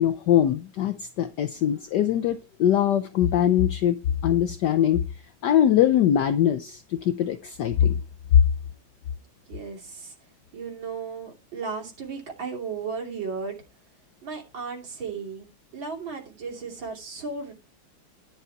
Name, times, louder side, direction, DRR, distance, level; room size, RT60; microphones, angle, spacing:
voice 1, 0.0-5.0 5.4-8.0 8.3-8.4, left 10 dB, 65° left, 1.2 m, -22 dB
voice 2, 9.5-10.1 10.5-13.6 14.2-17.5, right 5 dB, 70° right, 3.5 m, -35 dB
11.0 x 6.8 x 4.5 m
omnidirectional pair, 2.2 m